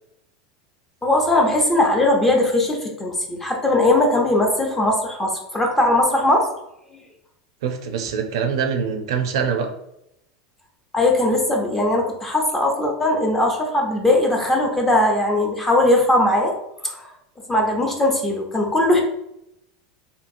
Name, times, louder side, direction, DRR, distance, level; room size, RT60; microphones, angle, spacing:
voice 1, 1.0-6.5 10.9-16.5 16.8-17.1 17.5-19.0, left 1 dB, 10° left, 0 dB, 0.6 m, -19 dB
voice 2, 7.6-9.7, right 6 dB, 85° right, 6 dB, 0.4 m, -24 dB
2.8 x 2.6 x 2.5 m, 0.82 s
supercardioid pair, 135°, 3 cm